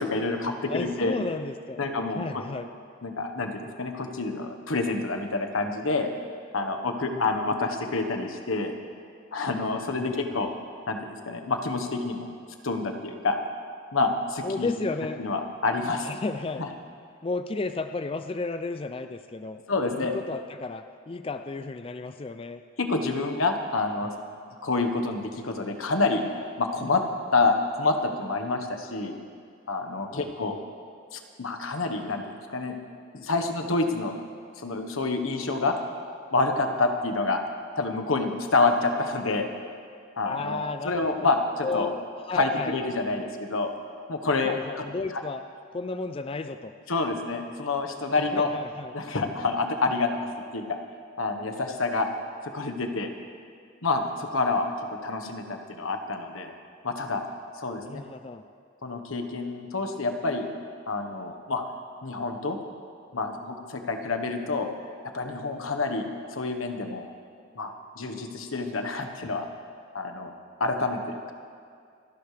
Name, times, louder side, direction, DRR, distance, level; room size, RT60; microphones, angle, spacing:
voice 1, 0.0-1.2 1.8-2.4 3.0-6.1 6.5-8.7 9.3-10.5 10.9-12.3 12.6-13.4 13.9-14.7 15.2-16.1 16.6-16.7 19.7-20.1 22.8-24.1 24.6-26.2 26.6-27.0 27.3-29.2 29.7-30.6 31.1-32.7 33.1-34.1 34.6-35.7 36.3-37.4 37.7-39.5 40.2-41.9 42.3-43.7 44.1-44.8 46.9-48.5 48.9-50.1 50.5-50.8 51.2-52.1 52.4-53.1 53.8-54.7 55.0-56.5 56.8-57.2 57.6-58.0 58.8-60.5 60.9-61.6 62.0-62.6 63.1-64.7 65.1-66.1 66.3-67.1 67.5-69.5 69.9-70.3 70.6-71.3, left 3 dB, 90° left, 5 dB, 1.3 m, -28 dB
voice 2, 0.7-1.8 2.1-2.7 7.1-7.3 10.0-10.4 14.4-15.2 16.0-16.7 17.2-19.6 19.9-22.6 30.1-30.6 40.2-40.9 41.2-41.3 41.6-42.7 44.4-45.4 45.7-46.7 48.1-48.9 57.7-58.4, left 3 dB, 25° left, 9 dB, 0.4 m, -33 dB
28.5 x 11.5 x 3.4 m, 2.3 s
head